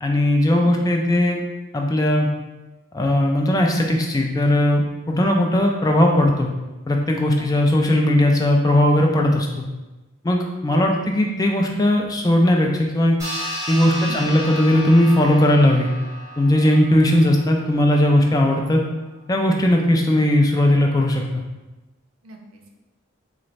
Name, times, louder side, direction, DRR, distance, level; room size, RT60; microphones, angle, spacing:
voice 1, 0.0-1.4 1.7-2.3 2.9-6.5 6.9-9.6 10.2-13.2 13.7-15.9 16.4-18.8 19.3-21.2, left 1 dB, 15° left, 1 dB, 0.3 m, -18 dB
voice 2, 10.8-11.1 14.0-14.4 18.2-18.3 22.2-22.8, equal, 85° right, 2 dB, 0.6 m, -39 dB
sound 1, 13.2-18.1, equal, 15° right, 1.3 m, -33 dB
3.9 x 2.5 x 3.1 m, 1.1 s
head